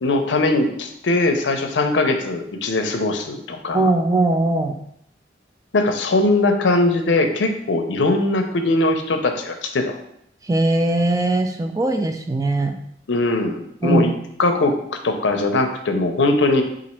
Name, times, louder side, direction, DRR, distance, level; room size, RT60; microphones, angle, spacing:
voice 1, 0.0-3.9 5.7-10.0 13.1-14.1 14.4-16.6, left 2 dB, 75° left, 6 dB, 0.5 m, -20 dB
voice 2, 3.7-4.7 10.5-12.7 13.8-14.1, right 2 dB, 20° right, 5 dB, 0.3 m, -20 dB
4.0 x 2.5 x 4.3 m, 0.72 s
head